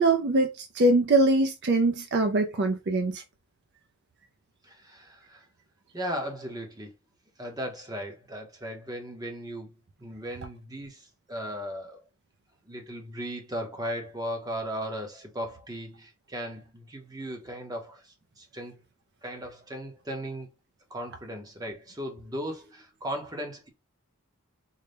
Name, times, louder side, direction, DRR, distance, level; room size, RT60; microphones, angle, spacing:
voice 1, 0.0-3.2, right 2 dB, 50° right, 0.4 m, -23 dB
voice 2, 4.6-5.4 5.9-6.9 7.4-9.7 10.0-12.0 12.7-18.8 19.2-20.5 20.9-23.7, equal, 15° right, 0.7 m, -37 dB
3.9 x 2.1 x 3.3 m
head